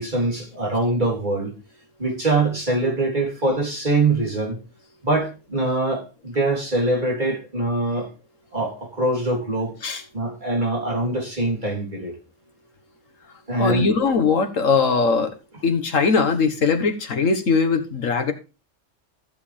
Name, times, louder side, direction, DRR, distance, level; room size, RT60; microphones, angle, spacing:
voice 1, 0.0-1.5 2.0-4.6 5.0-8.1 8.5-9.7 10.1-12.2 13.5-13.9, right 2 dB, 35° right, -2 dB, 3.6 m, -23 dB
voice 2, 13.6-15.3 15.6-18.3, left 4 dB, 85° left, 6 dB, 1.8 m, -20 dB
14.5 x 7.6 x 3.4 m, 0.31 s
omnidirectional pair, 1.3 m